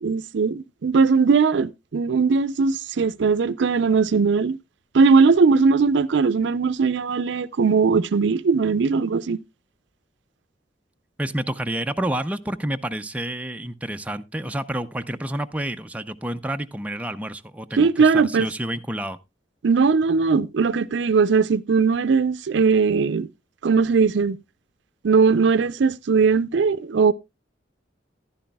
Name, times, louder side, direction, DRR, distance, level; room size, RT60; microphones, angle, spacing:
voice 1, 0.0-4.6 4.9-9.4 17.8-18.5 19.6-23.3 23.6-24.4 25.0-27.1, right 5 dB, 70° right, 0.5 m, -19 dB
voice 2, 11.2-19.2, right 1 dB, 10° right, 0.5 m, -29 dB
14.5 x 11.0 x 2.2 m
head